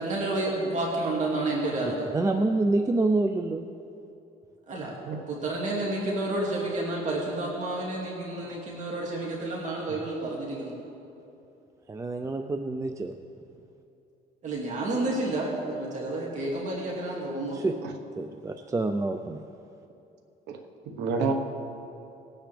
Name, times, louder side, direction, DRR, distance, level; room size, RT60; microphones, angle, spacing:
voice 1, 0.0-2.1 4.7-4.9 5.3-10.8 14.4-17.7, right 2 dB, 45° right, -3 dB, 2.3 m, -30 dB
voice 2, 1.9-3.7 11.9-13.1 17.5-17.7 18.2-19.4, right 2 dB, 20° right, 6 dB, 0.5 m, -27 dB
voice 3, 20.9-21.3, right 4 dB, 85° right, 5 dB, 1.3 m, -29 dB
20.0 x 9.1 x 3.4 m, 2.8 s
cardioid pair, 110°, 17 cm